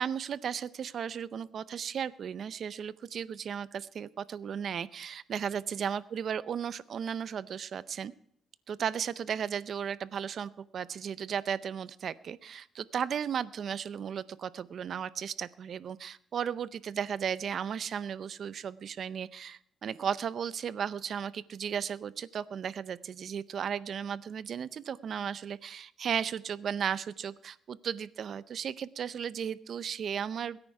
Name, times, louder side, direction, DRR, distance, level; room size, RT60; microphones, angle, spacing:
voice 1, 0.0-8.1 8.7-30.6, right 8 dB, 60° right, 17 dB, 0.6 m, -35 dB
22.0 x 9.7 x 4.7 m, 0.67 s
cardioid pair, 90°, 0 cm